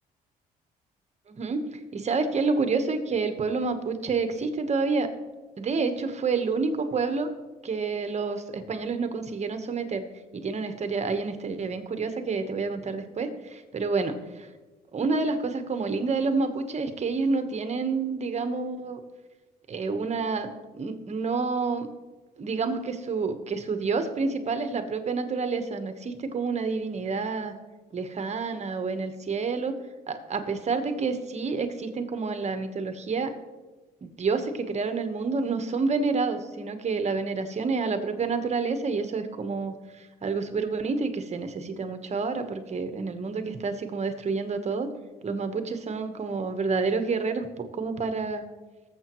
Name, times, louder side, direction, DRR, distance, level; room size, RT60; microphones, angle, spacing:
voice 1, 1.3-5.1 5.6-7.3 7.6-10.0 10.3-14.5 14.9-19.0 19.7-20.5 20.7-21.9 22.4-27.6 27.9-29.7 30.1-33.3 34.0-44.9 45.2-48.5, right 4 dB, 40° right, 8 dB, 1.1 m, -28 dB
18.5 x 7.5 x 3.1 m, 1.2 s
cardioid pair, 85°, 17 cm